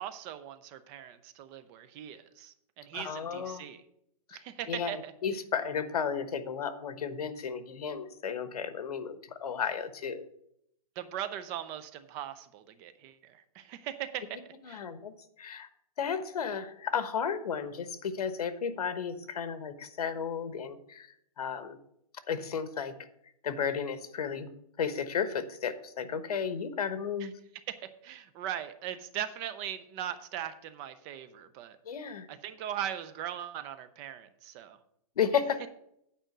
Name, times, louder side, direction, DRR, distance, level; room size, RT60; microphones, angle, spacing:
voice 1, 0.0-3.8 4.3-5.1 11.0-14.8 27.2-27.3 27.7-31.8 32.3-34.8, right 10 dB, 15° right, 12 dB, 0.4 m, -40 dB
voice 2, 2.9-3.7 4.3-4.4 4.7-10.3 14.7-15.1 15.4-15.7 16.0-21.1 21.4-21.8 22.3-22.9 23.4-24.5 24.8-27.3 31.8-32.3 35.2-35.7, left 7 dB, 80° left, 11 dB, 1.2 m, -33 dB
9.0 x 5.0 x 6.6 m, 0.75 s
hypercardioid pair, 165°, 19 cm